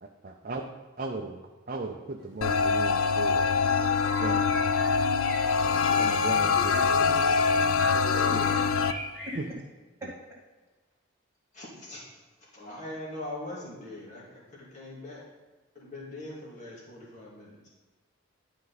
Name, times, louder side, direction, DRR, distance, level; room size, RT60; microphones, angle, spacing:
voice 1, 0.0-0.6 1.0-1.4 1.7-3.4 4.2-4.6 6.0-6.8 8.3-8.6 9.3-9.4 10.0-10.1, right 3 dB, 40° right, 2 dB, 0.5 m, -36 dB
sound 1, 2.2-2.3 2.8-2.9 3.1-3.5 4.0-9.5, equal, 60° left, 2.5 m, -44 dB
sound 2, 2.4-8.9, left 5 dB, 80° left, 0.4 m, -24 dB
voice 2, 6.6-7.2 7.8-8.6 10.0-10.1, equal, 10° right, -6 dB, 2.0 m, -38 dB
voice 3, 11.5-12.2 12.5-15.2 15.7-17.6, left 1 dB, 35° left, -6 dB, 2.4 m, -41 dB
11.0 x 5.2 x 4.0 m, 1.3 s
head